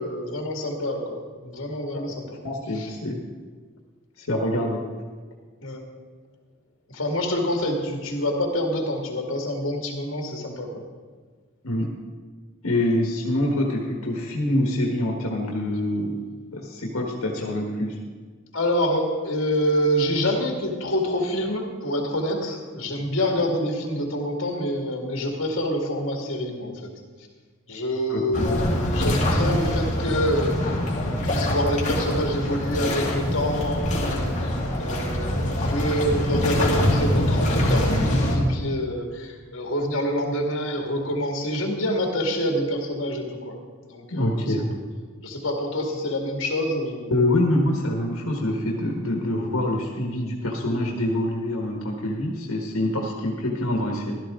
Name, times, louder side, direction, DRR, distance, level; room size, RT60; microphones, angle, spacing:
voice 1, 0.0-2.2 2.7-2.9 5.6-5.8 6.9-10.7 18.5-26.9 27.7-43.6 43.8-44.5 45.2-47.1, equal, 65° left, 1 dB, 2.1 m, -27 dB
voice 2, 2.4-3.2 4.2-4.8 11.6-11.9 12.6-16.1 16.5-17.9 28.1-28.6 44.1-44.7 47.1-54.2, left 1 dB, 90° left, 0 dB, 1.5 m, -25 dB
sound 1, 28.3-38.4, left 1 dB, 35° left, 2.3 m, -24 dB
15.5 x 12.5 x 3.7 m, 1.5 s
head